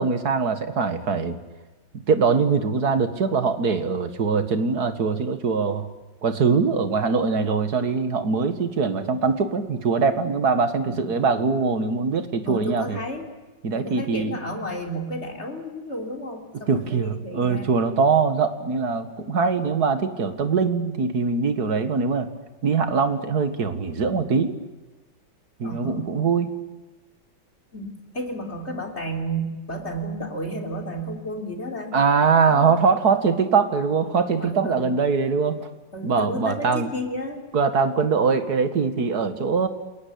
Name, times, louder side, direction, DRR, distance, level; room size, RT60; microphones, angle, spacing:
voice 1, 0.0-1.4 1.9-5.9 6.2-13.0 13.6-14.4 16.7-22.3 22.6-24.6 25.6-26.5 31.9-35.7 36.0-36.9 37.5-39.7, right 5 dB, 50° right, 10 dB, 2.3 m, -22 dB
voice 2, 12.4-13.3 13.7-17.9 25.6-26.1 27.7-31.9 32.5-32.8 34.4-34.9 35.9-37.5, right 1 dB, 35° left, 3 dB, 3.8 m, -32 dB
29.0 x 21.5 x 8.6 m, 1.2 s
omnidirectional pair, 2.2 m